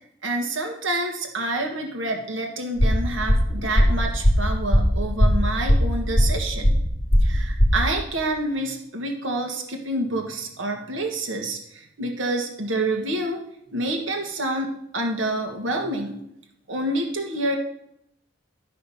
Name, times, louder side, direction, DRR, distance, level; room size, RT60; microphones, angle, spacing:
voice 1, 0.2-6.8 7.2-13.4 13.7-16.2 16.7-17.6, right 1 dB, 80° right, 3 dB, 1.6 m, -28 dB
sound 1, 2.8-7.8, equal, 35° left, 2.3 m, -19 dB
12.0 x 5.8 x 5.7 m, 0.76 s
head